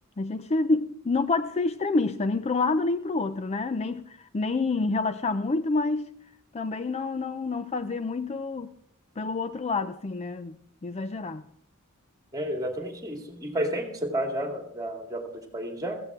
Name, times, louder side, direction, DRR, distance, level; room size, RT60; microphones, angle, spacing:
voice 1, 0.2-6.1 6.5-8.7 9.2-11.5, left 3 dB, 30° left, 0.4 m, -28 dB
voice 2, 12.3-16.0, right 1 dB, 15° right, 2.3 m, -31 dB
15.5 x 15.0 x 3.6 m
head